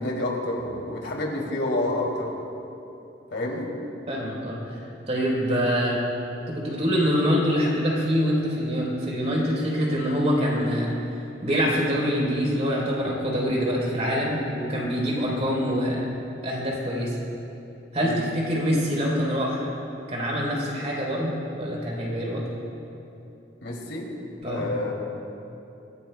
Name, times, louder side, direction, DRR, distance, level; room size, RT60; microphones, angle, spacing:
voice 1, 0.0-2.3 3.3-3.7 18.0-18.2 23.6-24.1 24.5-24.9, left 1 dB, 85° left, -2 dB, 2.9 m, -28 dB
voice 2, 4.1-4.8 5.1-6.0 6.5-10.9 11.4-16.1 16.4-17.2 17.9-19.7 20.1-22.4 24.4-24.6, equal, 40° right, -4 dB, 3.9 m, -25 dB
24.0 x 16.5 x 2.3 m, 2.9 s
head